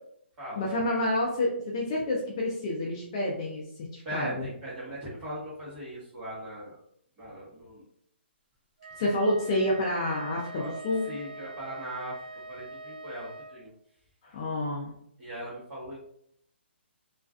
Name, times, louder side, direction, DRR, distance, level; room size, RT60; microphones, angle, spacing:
voice 1, 0.6-3.6 3.9-4.5 8.9-11.1 14.2-14.9, left 1 dB, 30° left, -3 dB, 0.4 m, -29 dB
voice 2, 4.0-6.8 7.2-7.8 10.5-10.7 11.0-13.7 15.2-16.0, right 1 dB, 15° right, -7 dB, 0.9 m, -39 dB
Wind instrument woodwind instrument, 8.8-13.6, right 2 dB, 45° right, 0.4 m, -44 dB
2.3 x 2.2 x 2.3 m, 0.69 s
hypercardioid pair, 165°, 6 cm